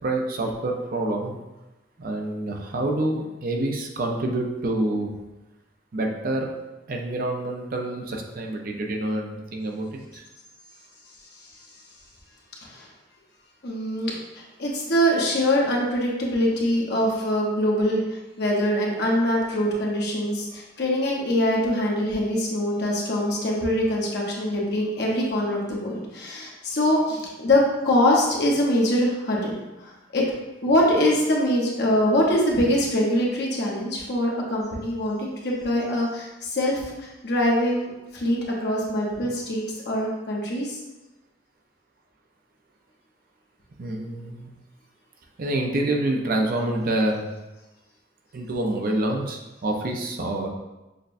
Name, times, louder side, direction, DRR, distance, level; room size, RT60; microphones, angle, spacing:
voice 1, 0.0-1.4 2.0-5.1 5.9-6.5 6.9-10.2 43.8-44.5 45.4-47.2 48.3-50.5, right 1 dB, 50° right, 2 dB, 0.5 m, -27 dB
voice 2, 13.6-29.5 29.8-30.2 30.6-40.8, left 1 dB, 60° left, -2 dB, 0.9 m, -23 dB
6.4 x 2.2 x 2.5 m, 1.0 s
head